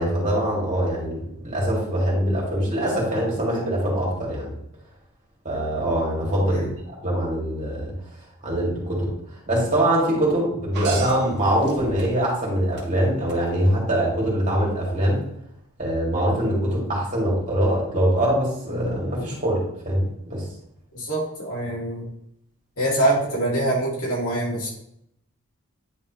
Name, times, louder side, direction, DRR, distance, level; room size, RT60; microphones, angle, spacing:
voice 1, 0.0-4.5 5.4-7.9 8.4-9.1 9.5-15.2 15.8-20.4, right 1 dB, 35° right, -4 dB, 2.9 m, -23 dB
sound 1, 10.7-12.4 12.8-13.4 15.0-15.1, right 4 dB, 50° right, 1.6 m, -35 dB
voice 2, 20.9-22.1 22.8-24.7, right 1 dB, 75° left, -4 dB, 2.9 m, -24 dB
9.9 x 4.2 x 3.4 m, 0.76 s
head